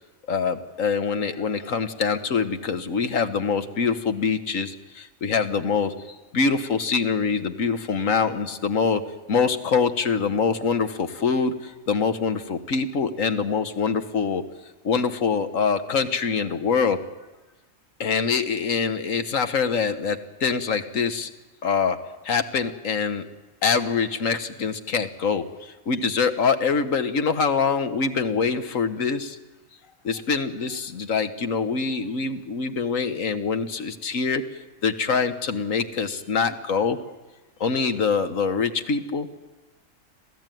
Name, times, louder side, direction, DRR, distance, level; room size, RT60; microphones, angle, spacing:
voice 1, 0.3-5.9 6.3-9.0 9.3-14.4 14.8-17.0 18.0-21.3 21.6-22.0 22.2-23.3 23.6-29.4 30.0-34.4 34.8-37.0 37.6-39.3, left 5 dB, 75° left, 9 dB, 1.7 m, -24 dB
26.5 x 16.0 x 9.3 m, 1.1 s
omnidirectional pair, 1.4 m